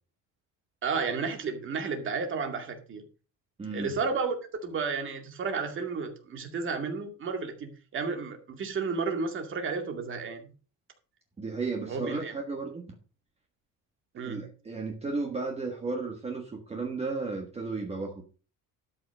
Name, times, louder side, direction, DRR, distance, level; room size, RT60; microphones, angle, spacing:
voice 1, 0.8-3.0 3.7-4.4 4.6-10.4 11.9-12.3 14.1-14.4, right 5 dB, 35° right, 2.2 m, -32 dB
voice 2, 3.6-3.9 11.4-12.8 14.2-18.2, right 3 dB, 20° right, 1.5 m, -34 dB
12.5 x 5.8 x 5.3 m
cardioid pair, 165°, 33 cm